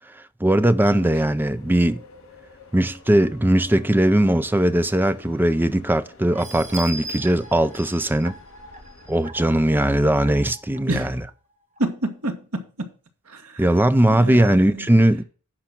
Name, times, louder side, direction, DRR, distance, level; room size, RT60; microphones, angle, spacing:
voice 1, 0.4-2.0 2.7-8.3 9.1-11.1 13.6-15.2, right 1 dB, 10° right, 0.5 m, -19 dB
sound 1, 0.7-9.2, left 3 dB, 65° left, 5.1 m, -50 dB
sound 2, 6.3-10.8 11.3-11.4 11.8-11.9, right 2 dB, 35° right, 1.2 m, -38 dB
voice 2, 11.8-12.9 13.3-13.6 14.1-14.9, right 2 dB, 75° right, 1.8 m, -29 dB
10.5 x 5.1 x 6.0 m
head